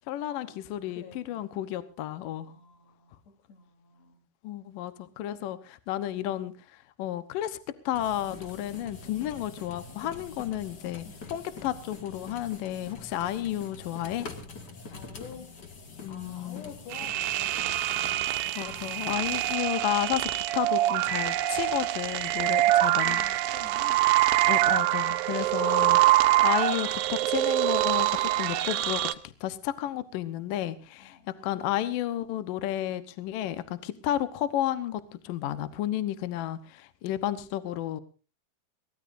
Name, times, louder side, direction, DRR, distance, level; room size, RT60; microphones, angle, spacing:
voice 1, 0.1-2.5 4.4-6.5 7.0-7.6 7.9-14.3 16.0-16.7 18.2-23.2 24.5-38.0, left 12 dB, 70° left, 13 dB, 2.5 m, -32 dB
voice 2, 0.9-1.5 2.5-3.1 3.5-4.3 11.1-11.4 14.9-15.5 16.1-17.7 22.5-24.0 25.1-25.7 31.0-31.3, left 6 dB, 90° left, 6 dB, 5.8 m, -49 dB
sound 1, 7.9-19.6, left 4 dB, 35° left, 1.8 m, -45 dB
sound 2, 16.9-29.1, right 15 dB, 75° right, 2.5 m, -25 dB
23.0 x 18.5 x 2.6 m, 0.33 s
omnidirectional pair, 4.6 m